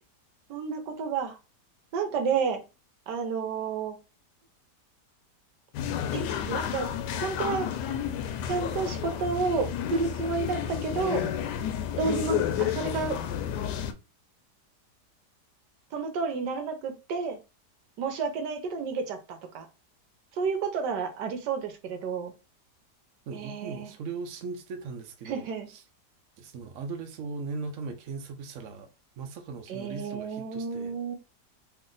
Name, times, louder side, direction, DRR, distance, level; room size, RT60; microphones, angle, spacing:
voice 1, 0.5-1.4 1.9-2.6 3.1-4.0 6.1-6.9 7.1-7.9 8.5-11.3 11.9-13.2 15.9-17.4 18.0-19.7 20.3-22.3 23.3-23.9 25.2-25.7 29.7-31.2, right 5 dB, 80° right, 1.4 m, -31 dB
sound 1, 5.7-13.9, left 9 dB, 80° left, 1.2 m, -31 dB
voice 2, 23.3-25.8 26.4-28.9 29.2-30.9, right 4 dB, 60° right, 1.0 m, -38 dB
3.3 x 2.7 x 3.8 m
omnidirectional pair, 1.8 m